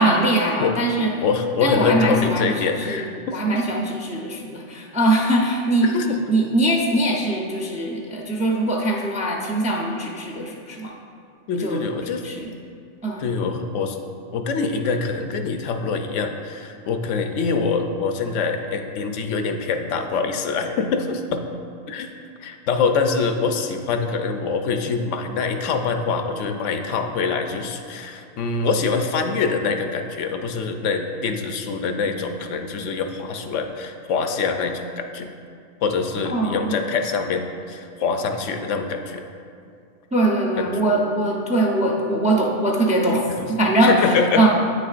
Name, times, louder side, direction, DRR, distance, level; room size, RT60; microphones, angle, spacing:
voice 1, 0.0-1.1 1.6-2.5 2.9-3.0 3.3-10.9 11.6-11.8 12.1-12.5 13.0-13.3 36.3-36.7 40.1-43.2 43.5-44.5, right 1 dB, 10° right, -1 dB, 0.3 m, -21 dB
voice 2, 1.2-3.4 5.8-6.2 11.5-12.2 13.2-14.0 14.3-21.4 21.9-22.1 22.4-35.3 35.8-39.2 40.6-40.7 43.4-43.5 43.8-44.5, left 5 dB, 80° left, 6 dB, 0.9 m, -24 dB
8.6 x 6.7 x 2.4 m, 2.4 s
omnidirectional pair, 1.3 m